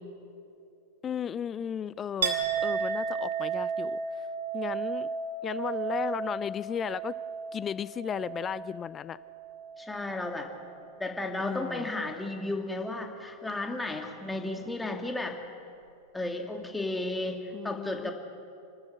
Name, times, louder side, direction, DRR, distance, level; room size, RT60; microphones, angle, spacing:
voice 1, 1.0-4.3 4.5-5.1 5.4-7.1 7.5-9.2 11.4-11.9 17.5-18.1, left 8 dB, 25° left, 18 dB, 0.4 m, -35 dB
Chink clink, 2.2-9.9 10.2-10.9, right 6 dB, 70° right, 2.3 m, -34 dB
voice 2, 9.8-10.5 11.0-15.4 16.1-18.1, left 2 dB, 10° left, 3 dB, 2.3 m, -33 dB
28.5 x 13.0 x 7.9 m, 2.6 s
figure-of-eight pair, 90°, 0 cm